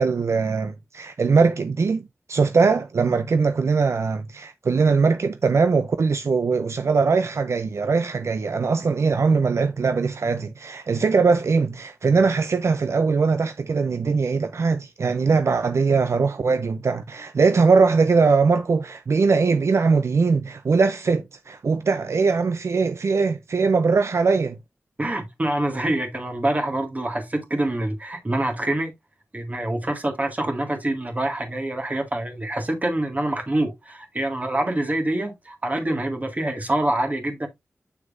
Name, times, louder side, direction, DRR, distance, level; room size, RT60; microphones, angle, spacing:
voice 1, 0.0-24.6, right 4 dB, 65° right, 0.5 m, -21 dB
voice 2, 25.0-28.9 29.3-37.5, right 1 dB, 30° right, 2.0 m, -26 dB
7.3 x 6.3 x 2.5 m
wide cardioid pair, 90°, 5 cm